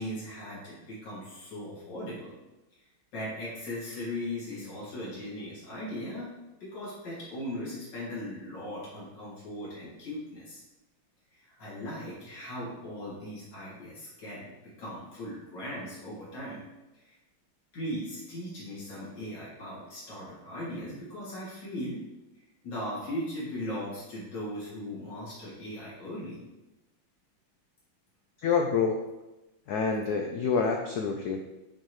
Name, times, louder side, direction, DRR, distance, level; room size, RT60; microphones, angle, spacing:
voice 1, 0.0-2.3 2.8-2.9 3.1-6.3 6.6-10.6 11.3-16.6 16.9-17.1 17.7-22.0 22.3-26.4, left 1 dB, 60° left, -8 dB, 3.0 m, -38 dB
voice 2, 28.4-29.0 29.7-31.4, left 5 dB, 80° left, 3 dB, 0.8 m, -27 dB
7.7 x 4.1 x 3.2 m, 1.0 s
omnidirectional pair, 2.3 m